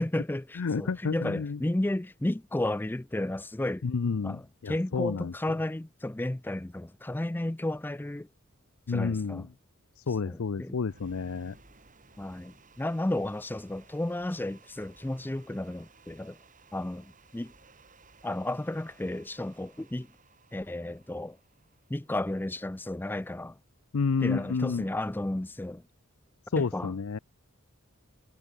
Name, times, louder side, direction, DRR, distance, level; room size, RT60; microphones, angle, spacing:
voice 1, 0.0-3.8 4.2-8.3 8.9-9.5 10.2-10.8 12.2-16.4 16.7-17.5 18.2-20.1 20.5-21.4 21.9-23.6 24.2-25.8 26.6-26.9, left 1 dB, 10° left, 0.4 m, -33 dB
voice 2, 0.5-1.6 3.8-5.3 8.9-9.5 10.0-11.6 23.9-24.8 26.5-27.2, left 5 dB, 70° left, 0.5 m, -30 dB
sound 1, 10.8-23.0, right 4 dB, 40° right, 4.4 m, -59 dB
head